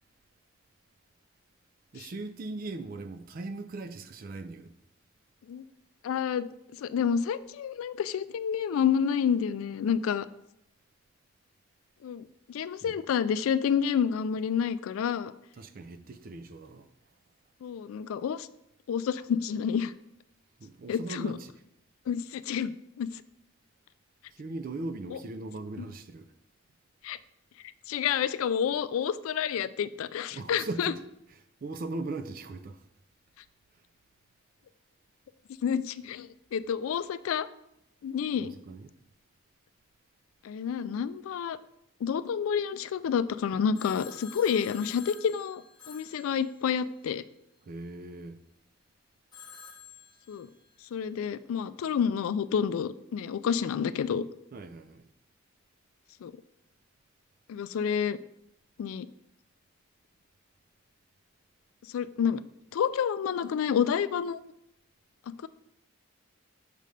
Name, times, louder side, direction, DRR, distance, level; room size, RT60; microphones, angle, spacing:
voice 1, 1.9-4.7 12.8-13.0 15.6-16.9 20.6-21.5 24.3-26.3 30.3-31.0 31.6-32.8 38.3-38.9 47.6-48.4 54.5-55.1, right 2 dB, 45° right, 0.4 m, -39 dB
voice 2, 6.0-6.5 6.8-10.3 12.0-15.3 17.6-18.5 18.9-19.9 20.9-21.4 22.1-23.1 25.1-25.2 25.8-25.9 27.0-27.2 27.9-30.9 35.6-37.5 38.0-38.5 40.4-41.6 42.0-47.2 50.3-50.5 50.9-54.2 56.2-56.3 57.5-58.2 58.8-59.1 61.9-62.4 62.7-64.4 65.4-65.5, left 7 dB, 80° left, 0.3 m, -29 dB
Telephone, 43.7-47.0 49.3-50.8, left 6 dB, 20° left, 0.8 m, -49 dB
6.6 x 3.3 x 5.2 m
head